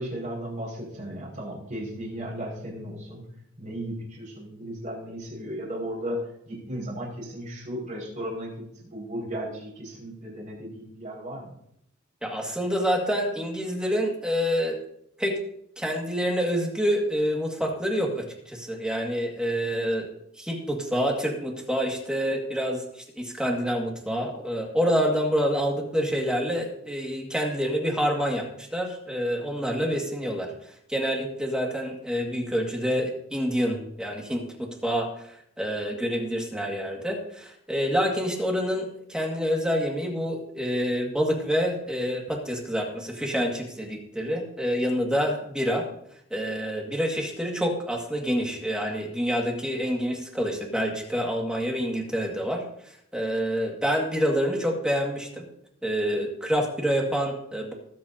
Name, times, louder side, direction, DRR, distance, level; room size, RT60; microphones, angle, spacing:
voice 1, 0.0-3.2 3.6-6.2 6.5-8.5 8.8-11.6, equal, 40° right, -3 dB, 5.4 m, -35 dB
voice 2, 12.2-14.8 15.2-15.4 15.8-20.1 20.4-22.8 23.2-30.5 30.9-35.3 35.6-45.9 46.3-52.6 53.1-55.5 55.8-57.7, equal, 5° right, 0 dB, 2.0 m, -27 dB
20.0 x 8.4 x 2.8 m, 0.71 s
head